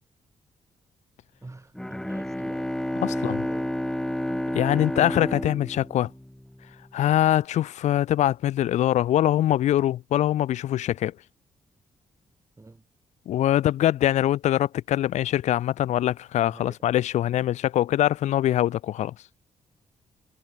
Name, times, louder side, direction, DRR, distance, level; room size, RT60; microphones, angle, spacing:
voice 1, 1.4-2.7 3.1-3.7 12.6-12.8 16.4-16.8, right 2 dB, 25° right, 4.3 m, -45 dB
Bowed string instrument, 1.7-6.7, left 1 dB, 5° left, 0.9 m, -30 dB
voice 2, 3.0-3.4 4.5-6.1 6.9-11.1 13.3-19.1, left 12 dB, 70° left, 0.4 m, -23 dB
supercardioid pair, 55°, 13 cm